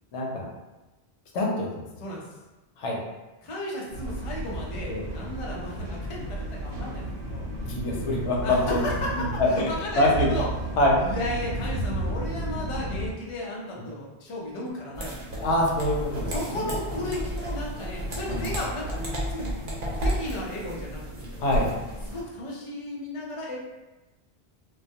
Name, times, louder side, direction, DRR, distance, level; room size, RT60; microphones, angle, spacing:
voice 1, 0.1-0.5 1.3-1.8 2.8-3.0 4.8-5.0 7.7-8.8 9.1-9.7 9.9-10.3 10.8-11.0 15.4-16.6 18.3-18.5 21.4-21.7, left 1 dB, 90° left, -2 dB, 0.9 m, -25 dB
voice 2, 3.4-7.4 7.7-7.8 8.4-10.5 11.0-15.1 16.3-19.0 19.3-19.5 19.9-21.2 22.1-23.6, left 1 dB, 45° left, -4 dB, 0.4 m, -34 dB
sound 1, 3.9-13.1, right 1 dB, 85° right, 0.9 m, -33 dB
sound 2, 14.9-22.2, equal, 55° right, 0.8 m, -32 dB
2.2 x 2.2 x 2.6 m, 1.1 s
omnidirectional pair, 1.1 m